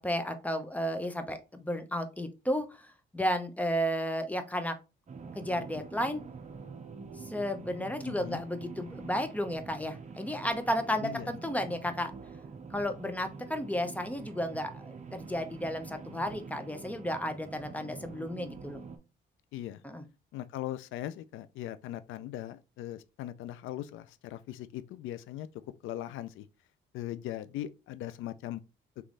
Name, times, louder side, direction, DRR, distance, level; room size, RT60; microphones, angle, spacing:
voice 1, 0.0-4.8 5.4-6.2 7.2-12.1 12.7-18.8 19.8-20.0, equal, 5° left, 0.7 m, -33 dB
sound 1, 5.1-19.0, right 5 dB, 35° right, 0.8 m, -46 dB
voice 2, 8.1-8.4 11.0-11.4 19.5-19.8 20.3-25.5 25.8-26.5 26.9-28.6, left 13 dB, 85° left, 0.4 m, -39 dB
3.4 x 3.1 x 3.8 m
cardioid pair, 90°, 20 cm